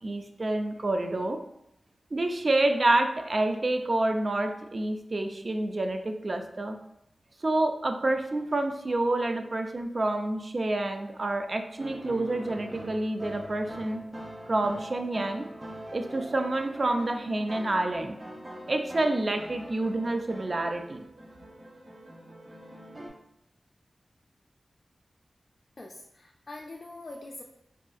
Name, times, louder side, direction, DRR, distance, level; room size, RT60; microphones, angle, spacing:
voice 1, 0.0-1.4 2.1-6.8 7.4-14.0 14.5-18.2 18.7-21.0, right 2 dB, 45° right, 6 dB, 0.3 m, -28 dB
sound 1, 11.8-23.1, equal, 25° right, 0.7 m, -43 dB
voice 2, 25.8-27.4, left 2 dB, 50° left, 0 dB, 0.3 m, -43 dB
3.5 x 2.4 x 2.4 m, 0.80 s
wide cardioid pair, 95°, 0 cm